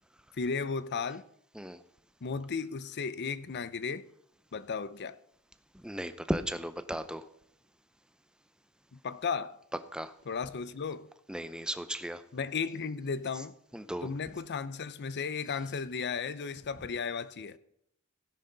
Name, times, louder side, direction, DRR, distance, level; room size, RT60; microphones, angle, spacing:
voice 1, 0.3-1.2 2.2-4.1 4.5-5.2 8.9-9.6 10.3-11.1 12.3-13.5 14.0-17.6, left 5 dB, 50° left, 0.6 m, -35 dB
voice 2, 5.8-7.2 9.9-10.1 11.3-12.2 13.7-14.1, equal, 5° right, 0.6 m, -35 dB
16.5 x 9.9 x 3.9 m
head